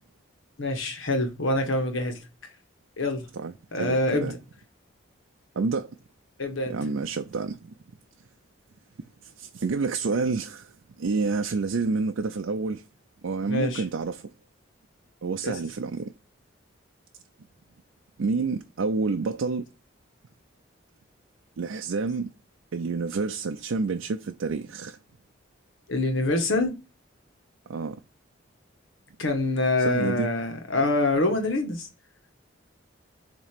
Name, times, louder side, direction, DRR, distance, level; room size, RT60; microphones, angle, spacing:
voice 1, 0.6-2.2 3.0-3.3 3.7-4.4 6.4-6.8 13.5-13.8 15.4-15.6 25.9-26.8 29.2-31.9, left 2 dB, 80° left, 1.4 m, -25 dB
voice 2, 3.8-4.3 5.6-5.9 6.7-7.7 9.2-12.8 13.2-14.3 15.2-16.1 18.2-19.7 21.6-22.3 22.7-25.0 27.7-28.0 29.8-30.3, right 4 dB, 75° right, 0.5 m, -28 dB
7.2 x 3.0 x 5.0 m
head